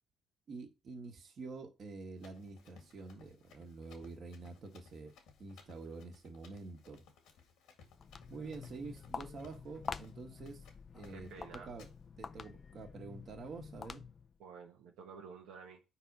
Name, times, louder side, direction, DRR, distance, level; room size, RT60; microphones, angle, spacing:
voice 1, 0.5-5.1 5.4-7.0 8.3-10.6 10.9-11.9 12.2-14.0, right 3 dB, 50° right, 1.6 m, -47 dB
Run, 2.2-10.2 10.5-10.8 11.0-11.4 11.8-12.0, left 6 dB, 80° left, 1.9 m, -62 dB
Walk footsteps, 7.9-14.4, left 5 dB, 40° left, 0.4 m, -47 dB
voice 2, 11.1-11.8 14.4-15.8, right 5 dB, 85° right, 1.2 m, -51 dB
4.7 x 4.1 x 5.4 m
cardioid pair, 95°, 0 cm